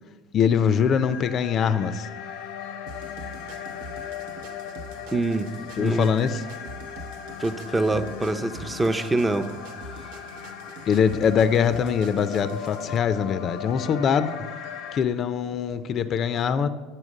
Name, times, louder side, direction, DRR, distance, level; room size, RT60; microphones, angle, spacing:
voice 1, 0.3-2.1 5.8-6.4 10.9-14.3 14.9-16.7, left 7 dB, 45° left, 12 dB, 0.4 m, -23 dB
sound 1, 0.8-15.0, left 8 dB, 80° left, 0.7 m, -38 dB
sound 2, 2.9-13.0, right 2 dB, 85° right, 0.8 m, -45 dB
voice 2, 5.1-5.5 5.8-6.1 7.4-9.5, right 2 dB, 15° right, 8 dB, 0.5 m, -25 dB
9.9 x 4.4 x 6.3 m, 1.3 s
supercardioid pair, 115°, 0 cm